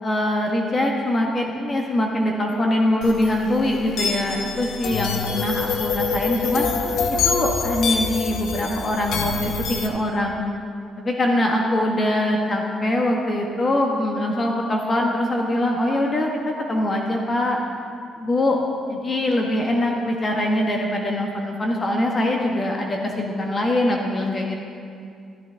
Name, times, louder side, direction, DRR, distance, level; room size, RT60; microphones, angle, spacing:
voice 1, 0.0-6.7 7.2-10.5 11.0-17.6 18.2-18.6 18.9-24.6, left 1 dB, 35° left, 0 dB, 1.3 m, -23 dB
sound 1, 3.0-9.9, left 5 dB, 80° left, 1.0 m, -26 dB
13.0 x 12.5 x 3.4 m, 2.4 s
cardioid pair, 90°, 0 cm